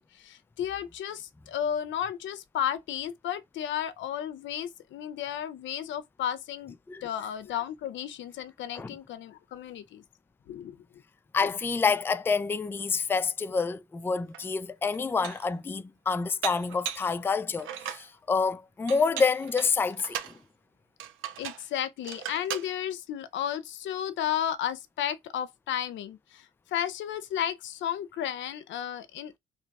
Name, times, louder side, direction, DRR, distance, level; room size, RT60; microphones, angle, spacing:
voice 1, 0.0-6.8 7.0-10.0 10.5-10.8 21.4-29.4, left 10 dB, 70° left, 0.5 m, -33 dB
voice 2, 11.3-20.3, left 5 dB, 10° left, 0.3 m, -28 dB
Dishes pots and pans, 14.3-14.4 14.9-15.5 16.4-17.1 17.6-18.1 18.9-20.4 21.0-21.7 22.0-22.7, right 10 dB, 80° right, 0.6 m, -37 dB
2.9 x 2.3 x 3.9 m
cardioid pair, 90°, 20 cm